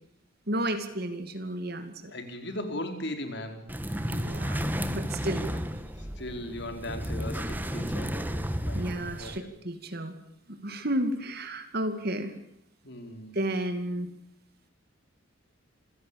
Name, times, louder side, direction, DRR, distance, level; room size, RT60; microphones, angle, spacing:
voice 1, 0.5-2.1 4.0-4.6 4.9-5.6 8.7-10.1 10.5-12.3 13.3-14.1, right 1 dB, 50° right, 8 dB, 2.5 m, -32 dB
voice 2, 2.1-3.6 6.0-8.9 9.2-9.5 12.8-13.3, left 1 dB, 55° left, 7 dB, 4.5 m, -38 dB
sound 1, 3.7-9.4, equal, 10° right, 1.6 m, -32 dB
27.5 x 17.0 x 8.9 m, 0.77 s
head